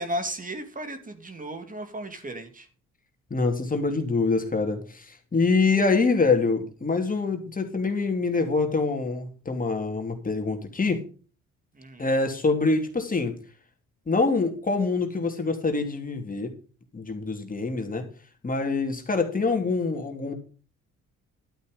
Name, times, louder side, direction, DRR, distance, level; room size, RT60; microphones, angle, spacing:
voice 1, 0.0-2.7 11.7-12.1, right 1 dB, 25° right, 2.4 m, -35 dB
voice 2, 3.3-11.0 12.0-13.4 14.1-16.5 16.9-18.1 18.4-20.3, left 3 dB, 30° left, 3.0 m, -25 dB
12.0 x 8.4 x 5.0 m
cardioid pair, 90°, 30 cm